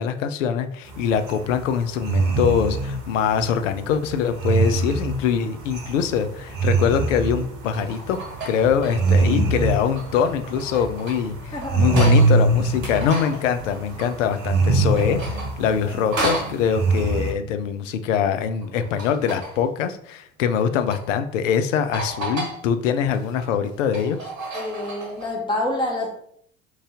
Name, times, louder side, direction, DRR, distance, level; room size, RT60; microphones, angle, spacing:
voice 1, 0.0-8.2 8.4-15.2 15.6-24.2, left 7 dB, 75° left, 9 dB, 0.5 m, -23 dB
sound 1, 0.9-17.3, right 3 dB, 60° right, 0.9 m, -24 dB
sound 2, 6.0-6.2 7.4-9.2 9.6-12.4 12.7-14.6 14.9-16.6 18.6-19.7 20.5-21.0 21.5-21.6 21.9-22.6 23.0-25.3, right 1 dB, 85° right, 1.0 m, -33 dB
voice 2, 11.5-11.8 24.5-26.1, left 1 dB, 10° left, -1 dB, 1.1 m, -27 dB
3.0 x 2.6 x 3.6 m, 0.68 s
figure-of-eight pair, 65°, 39 cm